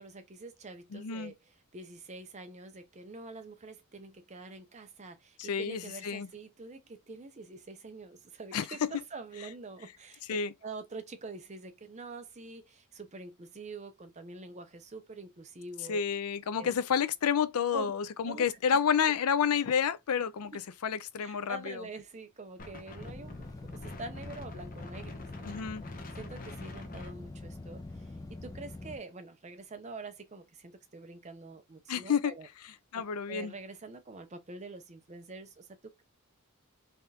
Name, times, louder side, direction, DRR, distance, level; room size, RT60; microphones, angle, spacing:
voice 1, 0.0-1.3 1.7-10.2 10.6-16.0 16.6-16.7 17.7-17.9 18.2-18.5 21.2-23.4 23.6-25.6 26.1-32.5 33.3-36.0, right 3 dB, 30° right, 0.7 m, -45 dB
voice 2, 0.9-1.3 5.4-6.3 8.5-8.9 10.3-10.5 15.9-20.5 20.8-21.8 25.5-25.8 31.9-32.3 32.9-33.5, left 7 dB, 80° left, 0.5 m, -30 dB
Wind, 22.6-28.1, left 2 dB, 40° left, 0.7 m, -47 dB
sound 1, 23.0-29.0, left 2 dB, 15° left, 0.3 m, -44 dB
3.5 x 3.5 x 2.8 m
head